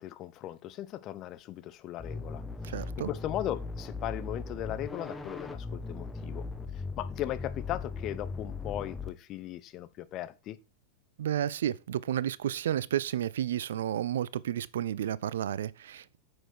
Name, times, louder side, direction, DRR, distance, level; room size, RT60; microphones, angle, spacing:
voice 1, 0.0-6.5 7.0-10.6, left 13 dB, 35° left, 0.8 m, -38 dB
sound 1, 2.0-9.1, left 4 dB, 5° left, 1.2 m, -38 dB
voice 2, 2.6-3.1 11.2-16.2, right 10 dB, 60° right, 0.4 m, -31 dB
9.0 x 6.4 x 4.5 m
figure-of-eight pair, 90°, 0 cm